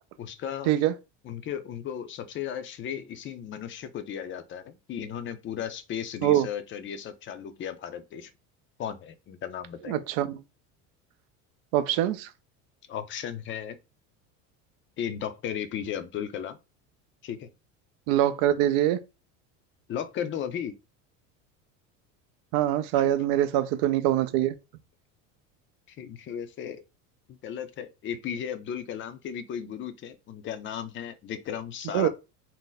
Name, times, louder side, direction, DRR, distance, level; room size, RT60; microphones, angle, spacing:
voice 1, 0.2-0.7 1.2-8.3 8.8-10.0 12.9-13.8 15.0-16.6 17.2-17.5 19.9-20.7 23.0-23.1 25.9-26.8 27.3-32.1, left 9 dB, 30° left, 0.5 m, -35 dB
voice 2, 9.9-10.4 11.7-12.3 18.1-19.0 22.5-24.5 31.9-32.1, right 12 dB, 65° right, 0.5 m, -24 dB
2.6 x 2.1 x 3.9 m
supercardioid pair, 105°, 39 cm